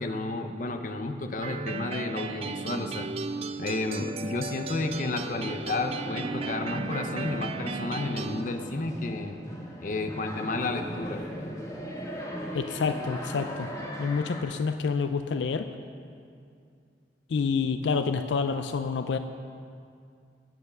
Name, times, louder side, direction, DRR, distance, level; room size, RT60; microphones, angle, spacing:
voice 1, 0.0-3.1 3.6-9.4 9.8-11.2, left 2 dB, 45° left, 6 dB, 0.7 m, -31 dB
sound 1, 1.4-8.4, right 4 dB, 35° right, 0.3 m, -36 dB
sound 2, 4.8-14.4, equal, 20° left, 1.2 m, -38 dB
voice 2, 12.5-13.7 14.0-15.7 17.3-19.2, left 5 dB, 85° left, 9 dB, 0.4 m, -28 dB
9.3 x 7.9 x 6.6 m, 2.3 s
head